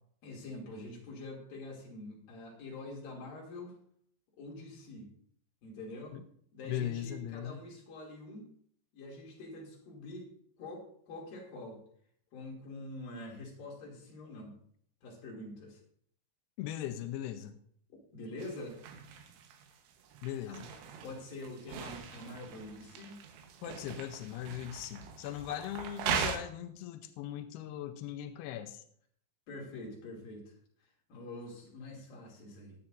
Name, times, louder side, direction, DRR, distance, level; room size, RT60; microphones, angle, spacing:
voice 1, 0.2-3.7 4.4-5.1 5.6-6.2 6.5-8.4 8.9-10.3 10.6-11.8 12.3-14.5 15.0-15.8 18.1-18.8 20.4-20.6 21.0-23.2 29.5-30.4 31.1-32.8, left 2 dB, 55° left, -2 dB, 4.1 m, -45 dB
voice 2, 6.6-7.6 16.6-17.6 20.2-20.7 23.6-28.8, left 11 dB, 85° left, 7 dB, 2.4 m, -39 dB
sound 1, 18.4-26.4, right 6 dB, 80° right, 3.5 m, -40 dB
20.5 x 8.3 x 2.6 m, 0.63 s
omnidirectional pair, 5.3 m